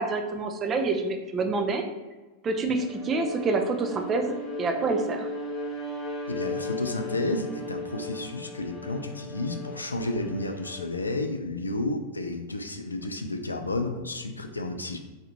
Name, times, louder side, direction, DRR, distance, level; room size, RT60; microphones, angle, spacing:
voice 1, 0.0-1.8 2.4-5.3, right 3 dB, 25° right, 4 dB, 0.4 m, -27 dB
Bowed string instrument, 2.7-11.1, left 1 dB, 20° left, 1.2 m, -36 dB
voice 2, 6.3-15.0, left 2 dB, 80° left, 6 dB, 0.3 m, -31 dB
4.0 x 2.5 x 2.7 m, 1.2 s
figure-of-eight pair, 90°, 0 cm